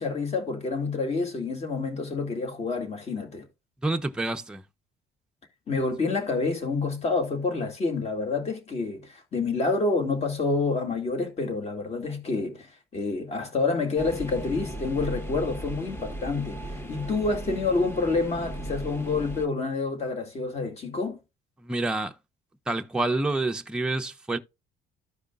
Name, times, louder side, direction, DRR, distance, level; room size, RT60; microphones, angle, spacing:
voice 1, 0.0-3.4 5.7-21.2, left 3 dB, 40° left, 2.1 m, -28 dB
voice 2, 3.8-4.6 21.6-22.2 22.7-24.4, right 2 dB, 5° right, 0.6 m, -28 dB
sound 1, 14.0-19.5, equal, 15° left, 1.0 m, -37 dB
14.0 x 5.0 x 2.3 m
cardioid pair, 110°, 17 cm